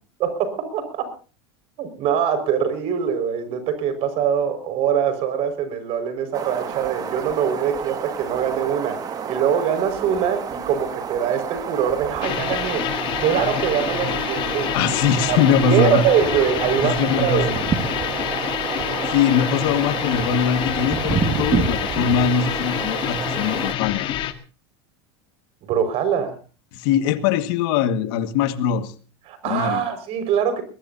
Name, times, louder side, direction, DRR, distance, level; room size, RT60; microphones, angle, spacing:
voice 1, 0.2-1.1 1.8-12.8 13.2-14.9 15.3-15.4 15.6-17.5 25.7-26.4 29.3-30.6, right 8 dB, 45° right, 9 dB, 5.3 m, -23 dB
sound 1, 6.3-23.7, right 6 dB, 30° right, 2.0 m, -29 dB
sound 2, 12.2-24.3, left 11 dB, 40° left, 1.7 m, -27 dB
voice 2, 14.7-16.1 16.8-17.6 19.1-24.1 26.7-28.9 29.4-29.8, left 7 dB, 65° left, 10 dB, 1.8 m, -21 dB
22.0 x 20.0 x 2.8 m, 0.37 s
supercardioid pair, 135°, 14 cm